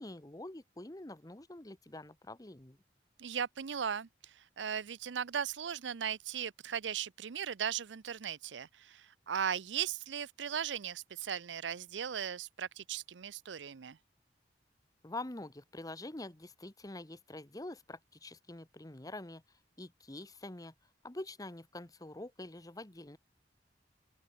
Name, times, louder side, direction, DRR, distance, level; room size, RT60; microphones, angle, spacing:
voice 1, 0.0-2.8 15.0-19.4 19.8-20.7 21.0-23.2, left 2 dB, 20° left, 1.2 m, -46 dB
voice 2, 3.2-4.1 4.6-14.0, right 8 dB, 85° right, 0.6 m, -37 dB
open air
head